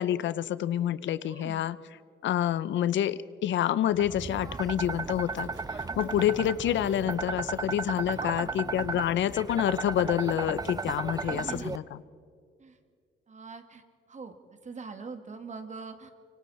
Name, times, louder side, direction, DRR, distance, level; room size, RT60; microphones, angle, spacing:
voice 1, 0.0-1.8 2.2-12.0, left 11 dB, 70° left, 17 dB, 0.6 m, -28 dB
voice 2, 1.2-1.7 8.1-8.5 11.2-11.8 12.6-12.8 13.3-13.8 14.1-14.3 14.6-16.1, right 4 dB, 35° right, 7 dB, 2.1 m, -42 dB
sound 1, 4.0-11.8, right 4 dB, 20° right, 0.6 m, -35 dB
sound 2, 4.6-9.5, right 5 dB, 70° right, 3.1 m, -60 dB
25.5 x 24.5 x 4.3 m, 2.2 s
cardioid pair, 90°, 20 cm